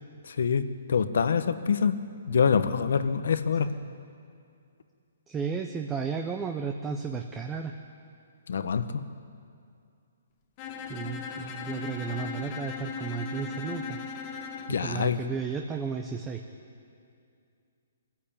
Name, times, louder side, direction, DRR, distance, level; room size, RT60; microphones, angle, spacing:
voice 1, 0.3-2.0 2.3-3.7 8.5-9.0 14.7-15.2, left 6 dB, 70° left, 12 dB, 1.3 m, -25 dB
voice 2, 5.3-7.7 10.9-14.0 14.7-16.4, right 5 dB, 10° right, 4 dB, 0.8 m, -33 dB
Bowed string instrument, 10.6-14.8, left 5 dB, 25° left, 1.4 m, -37 dB
23.0 x 14.5 x 8.9 m, 2.4 s
hypercardioid pair, 165°, 0 cm